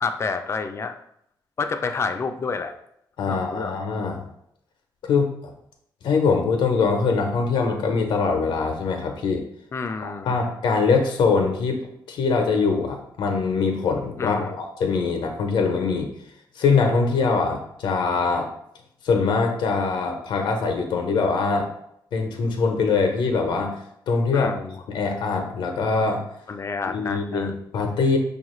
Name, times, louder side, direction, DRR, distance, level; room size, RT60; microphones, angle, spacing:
voice 1, 0.0-0.9 1.6-2.8 3.3-3.8 9.7-10.3 14.2-14.5 24.3-24.8 26.5-27.5, left 4 dB, 35° left, 8 dB, 0.3 m, -29 dB
voice 2, 3.2-4.3 5.1-5.3 6.0-9.4 10.0-16.1 16.6-18.5 19.0-21.7 22.1-23.8 24.1-24.6 24.9-26.2 26.9-28.2, left 4 dB, 80° left, 3 dB, 0.6 m, -23 dB
4.9 x 2.4 x 3.0 m, 0.74 s
cardioid pair, 115°, 8 cm